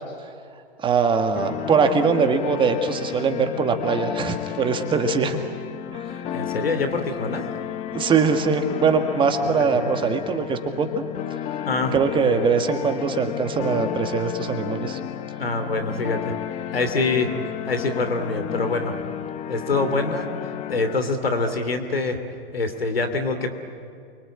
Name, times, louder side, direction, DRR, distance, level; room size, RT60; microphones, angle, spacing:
voice 1, 0.8-5.4 5.9-6.0 7.9-11.0 11.9-15.0, right 5 dB, 15° right, 6 dB, 1.7 m, -22 dB
sound 1, 1.4-21.0, left 10 dB, 20° left, 1.0 m, -32 dB
voice 2, 6.3-7.4 9.4-9.9 11.7-12.0 15.4-16.2 16.7-17.3 17.6-19.0 19.5-20.3 20.7-22.2 22.5-23.5, left 3 dB, 80° left, 7 dB, 2.8 m, -25 dB
29.0 x 24.0 x 8.7 m, 2.3 s
figure-of-eight pair, 115°, 29 cm